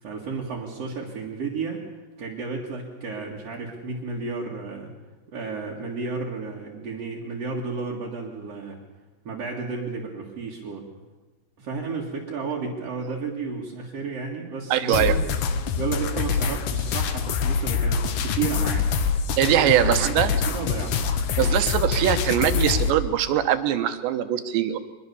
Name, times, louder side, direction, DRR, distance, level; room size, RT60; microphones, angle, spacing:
voice 1, 0.0-1.9 2.2-4.9 5.3-8.8 9.2-10.9 11.6-15.2 15.8-18.9 19.4-20.2 20.5-21.1, right 4 dB, 45° right, -3 dB, 2.5 m, -32 dB
voice 2, 14.7-15.2 19.4-20.3 21.4-24.8, right 11 dB, 85° right, 10 dB, 3.5 m, -22 dB
sound 1, 14.9-22.9, left 6 dB, 65° left, 2.2 m, -25 dB
23.5 x 21.5 x 7.0 m, 1.2 s
omnidirectional pair, 4.9 m